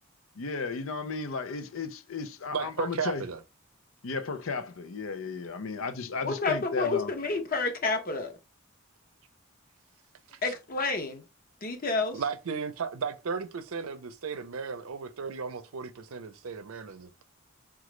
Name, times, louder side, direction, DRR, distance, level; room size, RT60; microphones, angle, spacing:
voice 1, 0.4-3.2 4.0-7.1, left 4 dB, 75° left, 0.5 m, -34 dB
voice 2, 2.5-3.4 10.3-10.4 12.1-17.2, right 5 dB, 90° right, 0.6 m, -35 dB
voice 3, 6.2-8.4 10.4-11.2 11.6-12.2, left 3 dB, 45° left, 0.8 m, -29 dB
4.8 x 2.4 x 3.1 m
head